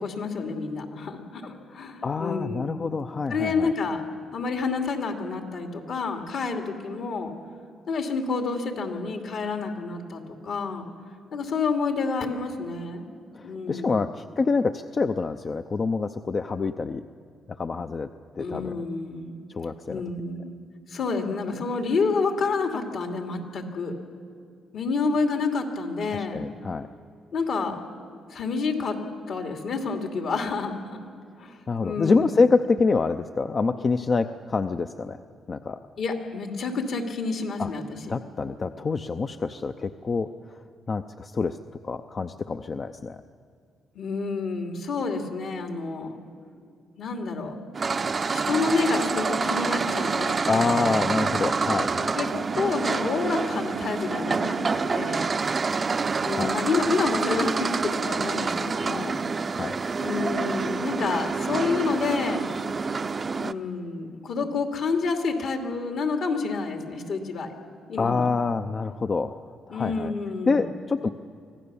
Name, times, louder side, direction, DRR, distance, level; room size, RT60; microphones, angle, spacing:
voice 1, 0.0-2.8 3.3-4.0 4.3-7.3 7.9-10.8 11.3-13.1 13.4-14.0 18.4-19.3 19.9-20.6 20.9-24.0 24.7-26.4 27.3-27.8 28.3-29.0 29.3-30.8 31.4-32.3 36.0-37.8 43.9-46.2 47.0-47.6 48.3-50.9 52.1-52.3 52.6-55.3 56.2-59.2 60.0-62.5 63.4-67.5 67.9-68.3 69.7-70.7, left 4 dB, 65° left, 3 dB, 2.7 m, -29 dB
voice 2, 2.0-3.7 13.3-17.0 17.5-18.1 18.3-18.8 19.5-20.0 26.1-26.9 31.7-35.2 35.5-35.8 37.6-37.7 38.1-40.6 40.9-41.6 41.8-43.2 50.5-52.1 56.3-56.6 59.5-59.8 68.0-70.1 70.5-71.1, left 4 dB, 40° left, 8 dB, 0.6 m, -26 dB
sound 1, 47.7-63.5, right 4 dB, 35° right, 0.6 m, -27 dB
25.0 x 16.5 x 7.0 m, 2.4 s
cardioid pair, 90°, 0 cm